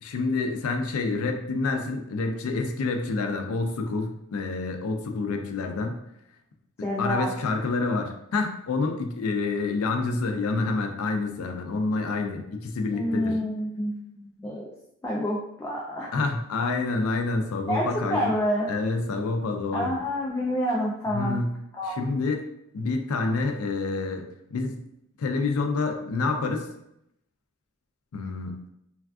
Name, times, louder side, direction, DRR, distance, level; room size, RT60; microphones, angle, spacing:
voice 1, 0.0-6.0 7.0-13.4 16.1-18.3 18.7-19.9 21.1-21.5 21.8-22.4 22.7-24.8 25.2-26.7 28.1-28.6, left 3 dB, 80° left, 4 dB, 0.4 m, -28 dB
voice 2, 6.8-7.3 12.9-14.7 15.0-16.1 17.7-18.7 19.7-21.4 21.8-22.0, equal, 15° left, -4 dB, 0.3 m, -28 dB
3.4 x 2.3 x 2.3 m, 0.80 s
head